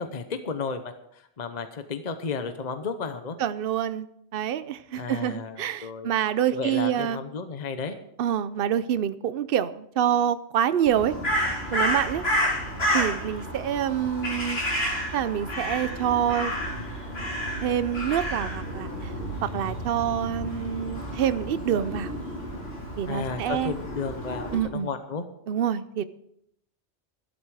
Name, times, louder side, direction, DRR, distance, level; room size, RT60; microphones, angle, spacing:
voice 1, 0.0-3.4 5.0-6.1 6.5-8.0 23.1-25.2, left 5 dB, 40° left, 8 dB, 0.9 m, -33 dB
voice 2, 3.4-4.1 4.3-7.2 8.2-11.2 11.7-12.2 12.9-14.6 15.1-16.5 17.6-19.1 19.4-22.1 23.0-23.7 24.5-24.9 25.5-26.0, right 9 dB, 60° right, 14 dB, 0.8 m, -26 dB
Crow, 10.9-24.6, equal, 65° left, 5.0 m, -30 dB
13.0 x 12.0 x 4.8 m, 0.75 s
omnidirectional pair, 1.1 m